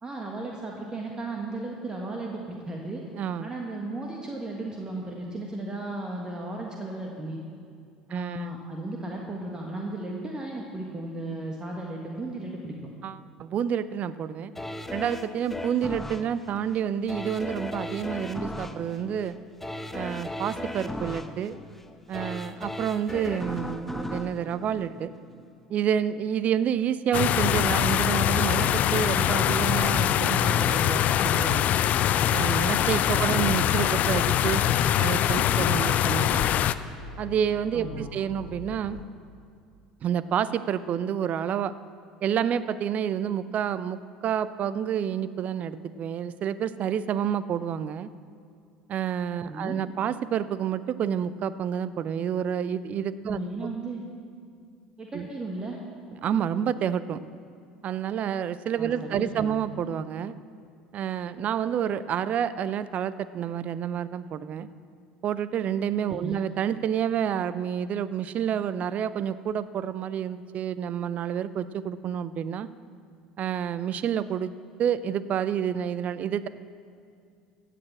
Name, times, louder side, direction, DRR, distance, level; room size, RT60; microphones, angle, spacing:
voice 1, 0.0-3.0 3.4-7.4 8.1-12.8 33.1-33.4 37.7-38.1 49.4-49.8 53.2-54.0 55.0-55.8 58.8-59.6 66.1-66.4, right 2 dB, 25° right, -1 dB, 1.7 m, -35 dB
voice 2, 3.1-3.5 8.1-8.5 13.0-14.5 14.9-19.4 19.9-21.6 22.1-25.1 25.7-31.7 32.3-34.6 35.0-36.5 37.2-39.0 40.0-41.7 42.2-48.1 48.9-53.4 55.1-55.3 56.2-57.2 57.8-60.4 60.9-64.7 65.2-72.7 73.4-74.5 74.8-76.5, right 8 dB, 45° right, 15 dB, 0.5 m, -29 dB
sound 1, 14.6-25.5 25.9-26.0, left 1 dB, 5° left, 0.8 m, -37 dB
sound 2, 27.1-36.7, left 11 dB, 45° left, 0.4 m, -23 dB
sound 3, 33.3-39.0, left 4 dB, 70° left, 1.9 m, -43 dB
16.0 x 6.7 x 7.5 m, 2.3 s
figure-of-eight pair, 65°, 3 cm